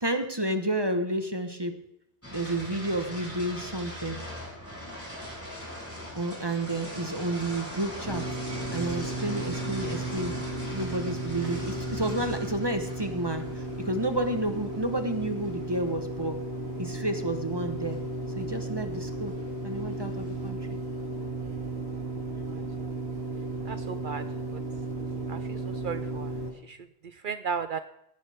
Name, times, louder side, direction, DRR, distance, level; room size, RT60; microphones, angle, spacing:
voice 1, 0.0-1.7 2.3-4.2 6.1-8.3 8.7-10.3 10.7-16.4 16.8-18.0 18.4-19.4 19.6-20.8, right 1 dB, 25° right, 7 dB, 1.1 m, -30 dB
sound 1, 2.2-20.5, equal, 15° left, 6.0 m, -42 dB
sound 2, 8.0-26.5, right 2 dB, 80° right, 2.8 m, -35 dB
voice 2, 23.7-24.2 25.3-25.6 25.8-26.3 26.7-26.8 27.2-27.8, right 6 dB, 60° right, 11 dB, 0.7 m, -34 dB
17.0 x 11.0 x 3.5 m, 0.78 s
omnidirectional pair, 1.0 m